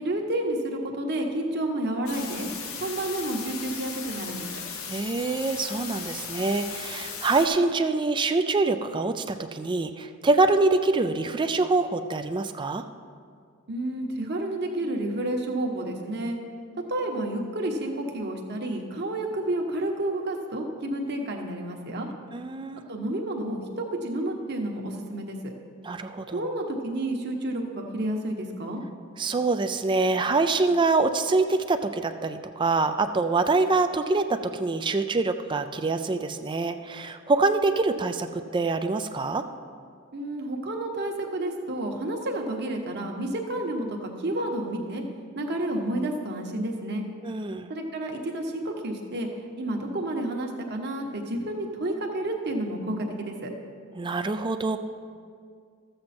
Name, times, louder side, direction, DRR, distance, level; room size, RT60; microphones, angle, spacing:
voice 1, 0.0-2.5 2.8-4.5 13.7-16.4 16.9-22.1 22.9-25.5 26.3-28.8 40.1-45.0 45.3-47.0 47.7-53.5, right 1 dB, 50° right, 2 dB, 1.2 m, -30 dB
sound 1, 2.1-7.5, left 6 dB, 70° left, 1.1 m, -37 dB
voice 2, 4.9-12.8 22.3-22.8 25.8-26.4 29.2-39.4 47.2-47.7 53.9-54.8, right 3 dB, 20° right, 8 dB, 0.4 m, -25 dB
13.5 x 7.8 x 4.3 m, 2.1 s
head